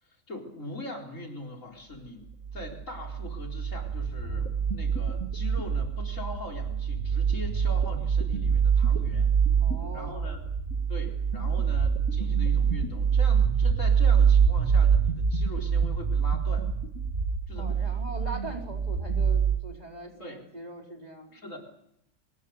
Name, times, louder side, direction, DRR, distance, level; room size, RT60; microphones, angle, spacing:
voice 1, 0.0-9.3 9.9-10.4 10.9-16.7 17.5-17.7 20.2-20.4 21.3-21.6, left 1 dB, 70° left, 1 dB, 4.8 m, -41 dB
sound 1, 2.4-19.6, right 6 dB, 70° right, 2.4 m, -25 dB
voice 2, 9.6-10.3 17.6-21.4, right 1 dB, 30° right, 1 dB, 4.4 m, -41 dB
24.5 x 19.5 x 8.1 m, 0.76 s
omnidirectional pair, 1.4 m